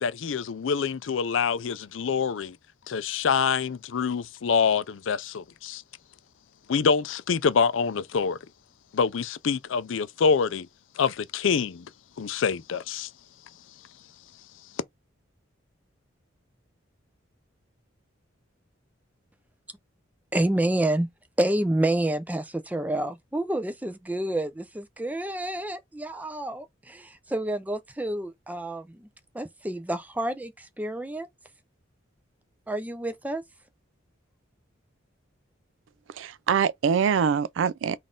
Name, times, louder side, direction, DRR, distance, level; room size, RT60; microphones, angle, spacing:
voice 1, 0.0-2.6 2.9-5.8 6.7-8.4 8.9-10.7 11.0-11.9 12.2-13.1, left 6 dB, 75° left, 0.4 m, -26 dB
voice 2, 20.3-21.1 21.4-29.1 29.3-31.3 32.7-33.4, right 1 dB, 10° right, 0.5 m, -28 dB
voice 3, 36.1-38.0, right 7 dB, 70° right, 0.3 m, -24 dB
4.0 x 2.5 x 3.7 m
head